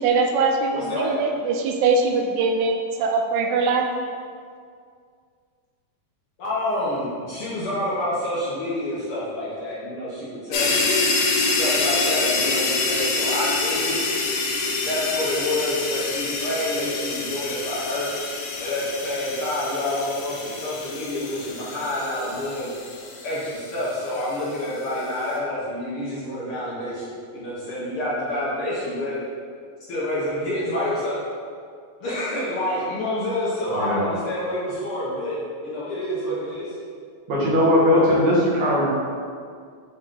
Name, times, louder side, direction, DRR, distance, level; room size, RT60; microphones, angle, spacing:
voice 1, 0.0-3.9, right 4 dB, 85° right, 3 dB, 2.0 m, -22 dB
voice 2, 0.7-1.1 6.4-10.9 11.6-14.0 14.8-18.1 18.6-22.7 23.2-29.1 29.9-31.2 32.0-35.3 35.6-36.7, left 1 dB, 60° left, -8 dB, 1.6 m, -28 dB
sound 1, 10.5-24.2, left 3 dB, 80° left, 1.2 m, -26 dB
voice 3, 33.8-34.1 37.3-38.9, left 1 dB, 65° right, -7 dB, 2.6 m, -19 dB
6.2 x 4.1 x 3.7 m, 2.2 s
omnidirectional pair, 3.4 m